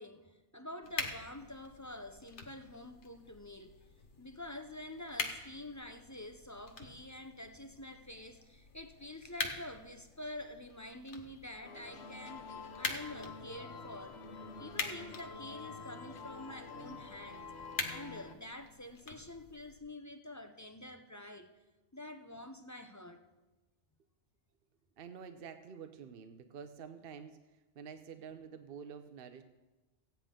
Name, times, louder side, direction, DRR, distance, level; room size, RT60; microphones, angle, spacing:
voice 1, 0.0-3.7 4.2-12.5 12.8-14.2 14.6-17.5 17.9-21.5 21.9-23.2, left 1 dB, 20° left, 6 dB, 0.5 m, -47 dB
sound 1, 0.8-19.8, left 4 dB, 85° left, 1.5 m, -45 dB
sound 2, 11.6-18.3, left 4 dB, 70° left, 1.2 m, -48 dB
voice 2, 25.0-29.4, right 7 dB, 60° right, 8 dB, 0.9 m, -49 dB
16.0 x 9.2 x 3.8 m, 1.1 s
omnidirectional pair, 1.2 m